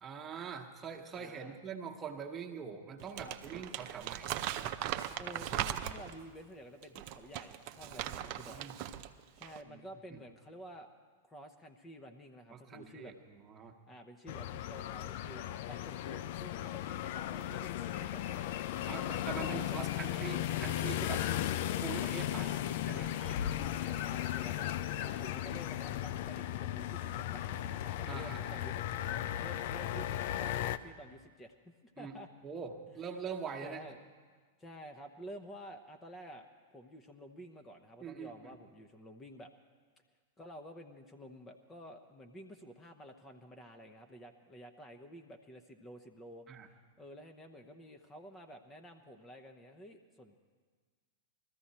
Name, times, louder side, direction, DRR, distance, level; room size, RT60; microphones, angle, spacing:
voice 1, 0.0-4.5 8.2-8.8 9.7-9.8 10.1-10.2 12.5-13.7 18.9-21.3 21.8-23.1 28.1-28.6 32.0-32.2 32.4-33.9 38.0-38.6 46.5-46.7, right 6 dB, 20° right, 2 dB, 1.3 m, -44 dB
voice 2, 1.2-1.6 3.1-3.4 5.2-8.7 9.4-10.9 11.2-13.1 13.9-18.5 19.3-19.8 22.4-22.6 23.1-32.3 33.6-34.0 34.6-36.5 36.7-39.5 40.4-46.5 47.0-50.4, equal, 15° left, 5 dB, 0.9 m, -51 dB
Crumpling crinkling, 3.0-6.2 6.8-9.1 9.4-9.6, right 11 dB, 45° right, 0.6 m, -39 dB
sound 1, 14.3-30.8, left 12 dB, 50° left, 0.5 m, -36 dB
21.0 x 14.0 x 4.3 m, 1.6 s
figure-of-eight pair, 100°, 0 cm